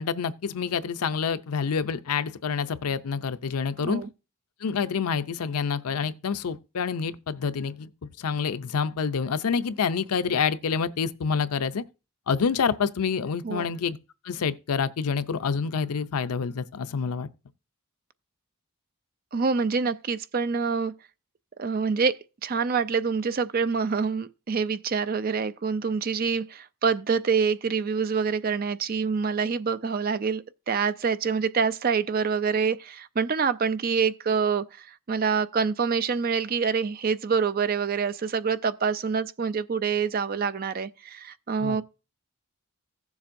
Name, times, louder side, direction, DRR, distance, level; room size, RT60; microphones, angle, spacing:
voice 1, 0.0-4.0 4.6-7.9 8.2-11.8 12.3-14.0 14.2-17.3 41.6-41.8, left 6 dB, 85° left, 0.5 m, -27 dB
voice 2, 19.3-20.9 21.6-41.8, right 5 dB, 40° right, 0.4 m, -26 dB
16.0 x 7.1 x 2.6 m
head